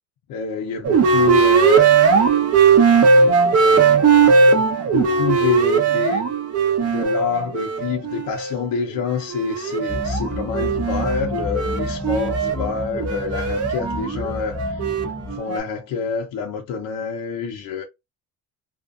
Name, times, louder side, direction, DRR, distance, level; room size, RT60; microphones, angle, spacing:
voice 1, 0.3-2.0 3.6-6.3 6.8-14.8 15.3-17.8, left 6 dB, 60° left, 0.7 m, -27 dB
sound 1, 0.8-8.5 9.0-15.6, right 5 dB, 40° right, 0.8 m, -18 dB
sound 2, 9.9-15.4, left 2 dB, 5° left, 0.6 m, -30 dB
2.6 x 2.4 x 2.4 m
cardioid pair, 105°, 37 cm